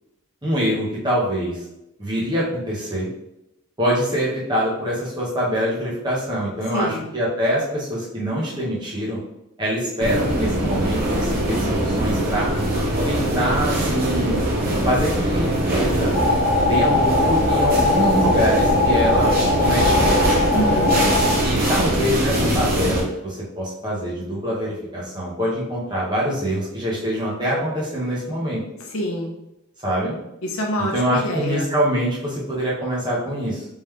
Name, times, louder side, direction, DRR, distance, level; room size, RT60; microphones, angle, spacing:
voice 1, 0.4-1.6 2.0-3.1 3.8-9.2 9.6-12.5 13.1-14.4 14.8-16.1 16.7-20.3 21.4-28.6 29.8-30.1 30.8-33.7, equal, 20° right, -6 dB, 1.0 m, -24 dB
voice 2, 6.7-7.1 20.5-21.1 28.9-29.3 30.4-31.7, equal, 70° left, 0 dB, 0.7 m, -26 dB
sound 1, 10.0-23.0, right 1 dB, 40° right, 0.8 m, -22 dB
sound 2, 16.1-21.3, left 2 dB, 10° left, 1.4 m, -20 dB
3.6 x 3.0 x 3.2 m, 0.88 s
head